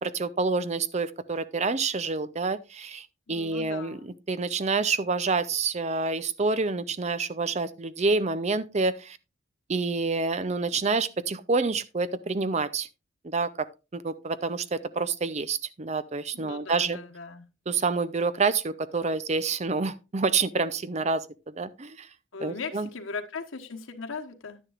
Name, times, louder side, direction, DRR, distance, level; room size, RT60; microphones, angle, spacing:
voice 1, 0.0-9.2 9.7-12.9 13.2-13.7 13.9-17.0 17.7-22.1 22.4-22.9, right 4 dB, 35° right, 0.5 m, -28 dB
voice 2, 3.3-4.2 16.3-17.5 22.3-24.6, left 4 dB, 85° left, 1.2 m, -38 dB
11.0 x 9.9 x 2.5 m
head